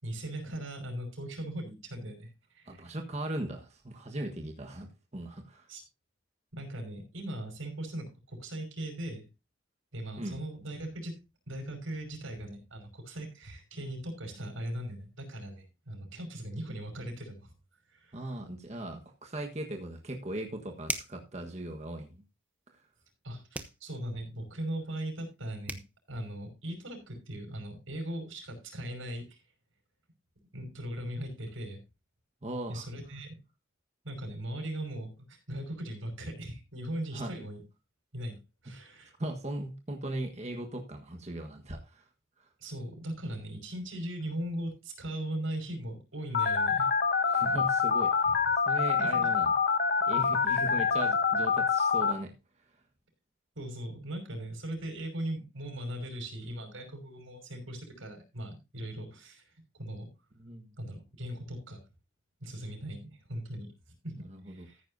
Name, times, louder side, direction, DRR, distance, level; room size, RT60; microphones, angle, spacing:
voice 1, 0.0-2.3 2.5-2.8 5.7-5.8 6.5-9.2 9.9-11.1 11.5-17.5 17.9-18.3 23.2-25.8 26.1-29.4 30.5-31.8 32.7-33.4 34.0-37.6 38.1-38.4 38.6-39.1 42.6-46.9 47.2-47.4 48.3-48.4 49.0-49.3 53.6-60.1 60.8-61.8 62.4-63.7 64.0-64.8, right 1 dB, 90° right, 5 dB, 5.7 m, -39 dB
voice 2, 2.7-5.7 10.2-10.4 18.1-22.2 32.4-32.9 37.1-37.3 39.2-42.0 47.2-48.3 48.5-49.5 50.1-52.3 60.4-60.7 64.2-64.7, right 1 dB, 35° right, 2 dB, 1.5 m, -38 dB
sound 1, 20.8-21.3 23.5-23.8 25.3-25.4 25.7-25.9, right 2 dB, 10° right, 0.9 m, -36 dB
Telephone, 46.3-52.1, left 5 dB, 50° left, 1.1 m, -26 dB
14.5 x 10.0 x 2.7 m, 0.27 s
head